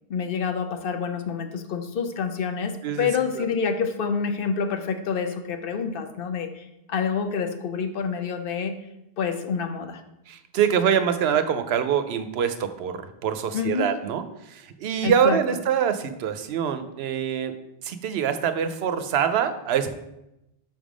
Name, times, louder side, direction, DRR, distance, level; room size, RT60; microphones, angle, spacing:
voice 1, 0.1-8.7 9.2-10.0 13.5-13.9 15.0-15.4, left 6 dB, 65° left, 7 dB, 0.8 m, -27 dB
voice 2, 10.3-17.5 17.8-19.9, right 8 dB, 85° right, 10 dB, 0.8 m, -25 dB
5.6 x 3.5 x 4.9 m, 0.88 s
omnidirectional pair, 1.0 m